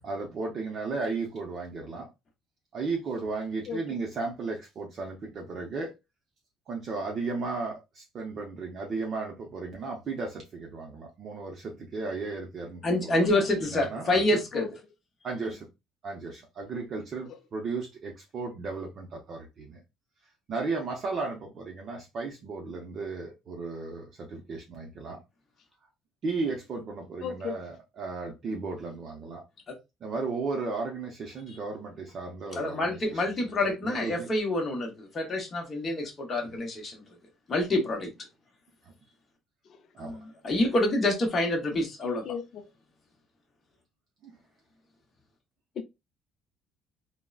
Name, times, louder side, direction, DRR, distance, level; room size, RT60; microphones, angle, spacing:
voice 1, 0.0-2.1 2.7-5.9 6.7-13.3 13.6-14.2 15.2-15.6 16.0-19.8 20.5-25.2 26.2-29.4 30.0-33.3 33.6-34.3 36.5-36.6 39.9-40.2 44.2-44.3, right 3 dB, 35° right, 0.6 m, -35 dB
voice 2, 12.8-14.7 32.5-37.0 37.5-38.1 40.0-42.2, left 1 dB, 25° left, 0.8 m, -27 dB
voice 3, 27.2-27.6 42.0-42.6 45.8-45.9, left 7 dB, 40° left, 0.3 m, -34 dB
3.6 x 2.0 x 2.3 m
cardioid pair, 175°, 0 cm